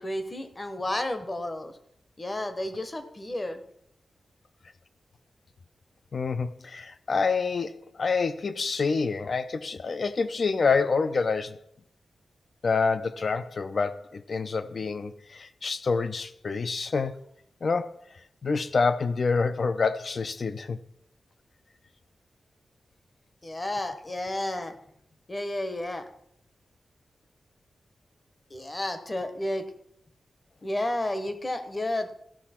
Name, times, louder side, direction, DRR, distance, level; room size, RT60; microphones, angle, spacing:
voice 1, 0.0-1.7 2.2-3.6 23.4-24.8 25.3-26.1 28.5-29.7 30.6-32.1, left 1 dB, 25° left, 0.9 m, -31 dB
voice 2, 6.1-11.6 12.6-17.1 17.6-17.9 18.4-20.8, left 4 dB, 45° left, 0.5 m, -27 dB
14.0 x 6.0 x 4.3 m
wide cardioid pair, 160°, 0 cm